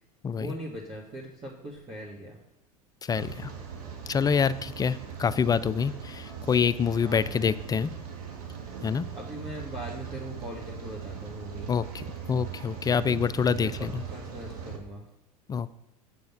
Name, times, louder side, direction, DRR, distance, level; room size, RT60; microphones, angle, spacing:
voice 1, 0.3-2.4 7.0-7.5 9.1-11.7 12.9-13.2 13.5-15.1, right 1 dB, 30° right, -3 dB, 2.0 m, -40 dB
voice 2, 3.0-3.5 4.1-7.9 8.8-9.1 11.7-14.0 15.5-15.7, left 6 dB, 20° left, 16 dB, 0.3 m, -26 dB
Rain, 3.1-14.8, right 7 dB, 70° right, 1.9 m, -40 dB
8.7 x 5.4 x 5.9 m, 0.86 s
hypercardioid pair, 80°, 20 cm